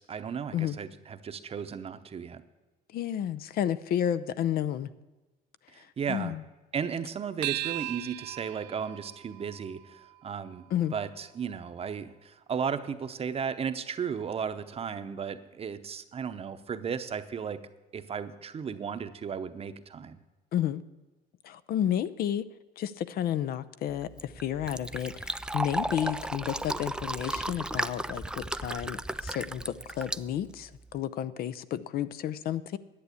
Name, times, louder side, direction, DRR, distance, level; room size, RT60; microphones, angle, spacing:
voice 1, 0.0-2.4 5.7-6.4 6.7-10.6 10.9-17.6 17.9-20.2, right 7 dB, 35° right, 10 dB, 0.8 m, -35 dB
voice 2, 2.9-4.9 6.1-6.4 10.7-10.9 20.5-20.8 21.4-22.5 22.8-32.8, left 10 dB, 65° left, 14 dB, 0.6 m, -31 dB
sound 1, 7.4-12.2, right 19 dB, 80° right, 0.5 m, -39 dB
Fill (with liquid), 23.9-31.0, right 1 dB, 5° right, 0.3 m, -35 dB
10.5 x 8.2 x 8.3 m, 1.2 s
cardioid pair, 110°, 17 cm